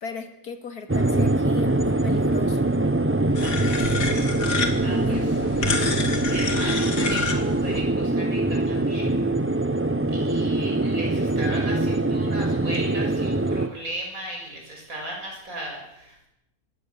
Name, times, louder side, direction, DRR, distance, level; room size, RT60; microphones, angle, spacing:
voice 1, 0.0-2.8 4.8-5.9, left 5 dB, 70° left, 8 dB, 2.5 m, -36 dB
sound 1, 0.9-13.7, right 2 dB, 20° right, 0.3 m, -23 dB
sound 2, 3.4-7.8, left 4 dB, 85° left, 2.7 m, -29 dB
voice 2, 3.4-3.8 4.8-5.2 6.2-9.2 10.1-16.3, right 1 dB, 55° right, 0 dB, 6.9 m, -36 dB
21.5 x 17.0 x 7.1 m, 0.86 s
omnidirectional pair, 1.7 m